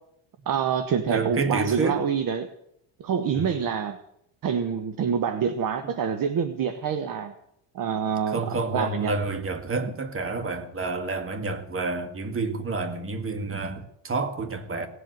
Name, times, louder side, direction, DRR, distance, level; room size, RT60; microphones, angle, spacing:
voice 1, 0.5-2.5 3.0-4.0 4.4-7.3 7.7-9.1, right 7 dB, 45° right, 1.2 m, -26 dB
voice 2, 1.1-2.0 3.3-3.6 8.3-14.9, right 3 dB, 25° right, 2.0 m, -29 dB
18.0 x 8.0 x 9.3 m
cardioid pair, 135°, 47 cm